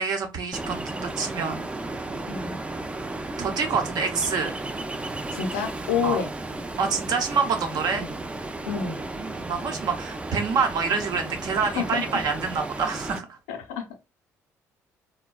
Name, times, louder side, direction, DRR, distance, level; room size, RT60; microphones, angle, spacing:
voice 1, 0.0-1.7 3.4-4.5 6.0-6.2 6.8-8.0 8.8-13.4, right 5 dB, 55° right, 0.8 m, -27 dB
Ocean, 0.5-13.2, right 2 dB, 15° right, 0.4 m, -34 dB
voice 2, 5.3-6.3 8.0-8.1 8.7-9.0 11.6-12.0 13.5-13.9, left 6 dB, 80° left, 0.6 m, -28 dB
3.4 x 2.1 x 2.3 m
hypercardioid pair, 50°, 8 cm